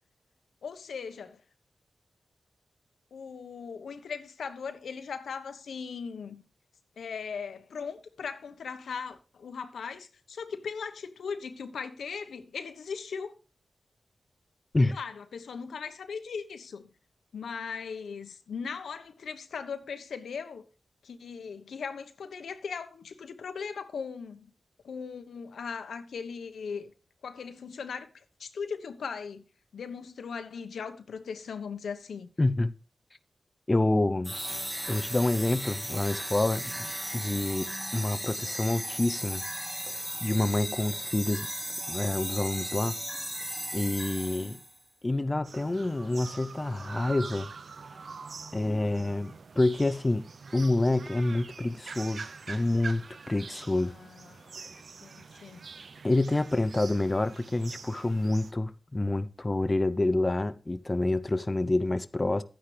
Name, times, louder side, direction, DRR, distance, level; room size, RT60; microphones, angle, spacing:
voice 1, 0.6-1.4 3.1-6.4 7.0-13.3 14.9-16.9 17.3-20.6 21.0-24.5 24.8-26.9 27.2-29.4 29.7-32.3 44.3-44.6 48.5-49.1 53.9-54.7 55.0-55.6, left 6 dB, 90° left, 1.1 m, -39 dB
voice 2, 32.4-32.7 33.7-34.3 34.9-39.4 39.9-41.5 41.9-42.9 43.7-44.6 45.0-47.5 48.5-50.3 50.5-53.9 56.0-62.4, left 2 dB, 25° left, 0.6 m, -28 dB
sound 1, 34.2-44.8, equal, 10° right, 1.2 m, -36 dB
sound 2, 45.4-58.5, right 4 dB, 70° right, 0.7 m, -45 dB
11.5 x 9.5 x 3.3 m
cardioid pair, 60°, 0 cm